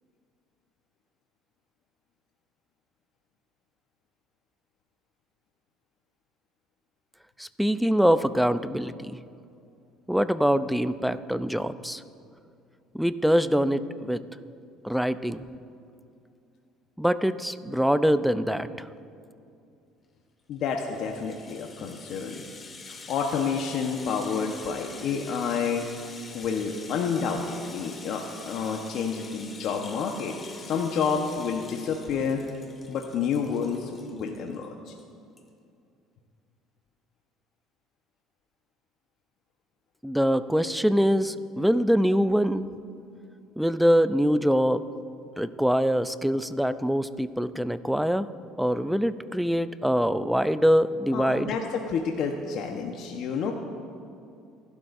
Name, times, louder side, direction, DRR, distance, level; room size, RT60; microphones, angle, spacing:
voice 1, 7.4-9.2 10.1-12.0 12.9-14.2 14.8-15.4 17.0-18.9 40.0-42.7 43.6-44.8 45.4-48.3 48.6-51.6, equal, ahead, 13 dB, 0.6 m, -24 dB
voice 2, 20.5-22.3 23.1-25.8 26.3-32.4 32.9-34.9 51.1-53.5, left 6 dB, 65° left, 2 dB, 1.2 m, -29 dB
Rattle (instrument), 20.5-34.7 35.0-35.1 35.4-35.5, left 4 dB, 30° left, 2.2 m, -46 dB
28.5 x 12.0 x 2.7 m, 2.5 s
supercardioid pair, 80°, 0 cm